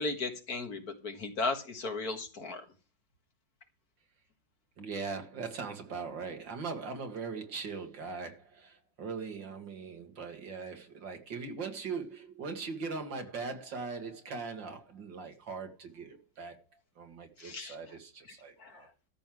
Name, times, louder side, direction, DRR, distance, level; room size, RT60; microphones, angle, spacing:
voice 1, 0.0-2.6 17.4-17.8 18.6-18.8, left 3 dB, 55° left, 2.1 m, -35 dB
voice 2, 4.8-16.6 17.0-18.9, right 4 dB, 75° right, 2.7 m, -40 dB
13.5 x 5.5 x 7.8 m
omnidirectional pair, 2.0 m